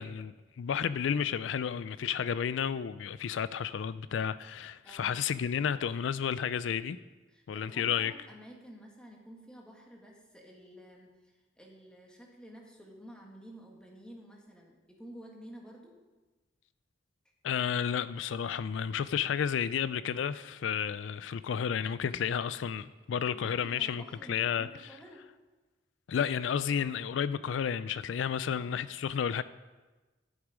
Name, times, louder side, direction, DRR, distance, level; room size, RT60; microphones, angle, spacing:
voice 1, 0.0-7.0 7.5-8.1 17.4-24.7 26.1-29.4, left 8 dB, 85° left, 0.4 m, -32 dB
voice 2, 4.8-5.2 7.3-15.9 23.3-25.2 28.4-29.0, equal, 5° left, 1.8 m, -51 dB
12.0 x 8.0 x 5.1 m
head